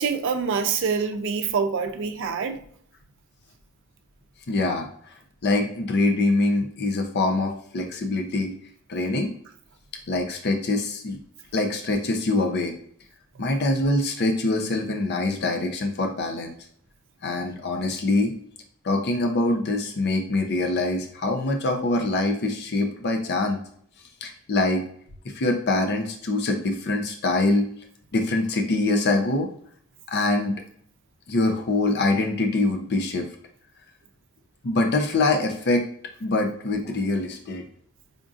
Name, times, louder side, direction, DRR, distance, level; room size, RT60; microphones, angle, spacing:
voice 1, 0.0-2.6, right 5 dB, 60° right, 7 dB, 0.5 m, -25 dB
voice 2, 4.5-5.1 5.4-8.5 8.9-9.3 10.1-11.2 11.5-12.7 13.4-16.5 17.2-18.4 18.8-23.6 24.2-24.9 25.2-27.6 28.1-29.5 30.1-30.6 31.3-33.3 34.6-35.9 36.2-37.6, left 2 dB, 50° left, 4 dB, 0.5 m, -24 dB
5.0 x 2.5 x 2.4 m, 0.62 s
head